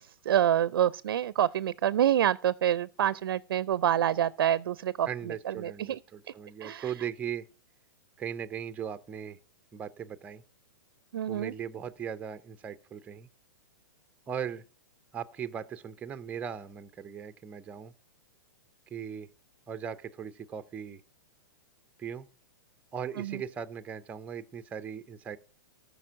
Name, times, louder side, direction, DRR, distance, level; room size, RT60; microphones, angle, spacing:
voice 1, 0.0-6.0 6.3-6.4 6.6-7.0 11.1-11.5 23.2-23.4, right 11 dB, 80° right, 0.4 m, -27 dB
voice 2, 5.1-7.5 8.2-9.4 9.7-10.4 11.3-13.3 14.3-14.6 15.1-17.9 18.9-19.3 19.7-21.0 22.0-22.3 22.9-25.4, right 8 dB, 10° right, 0.5 m, -38 dB
14.0 x 5.1 x 6.1 m
hypercardioid pair, 145°, 12 cm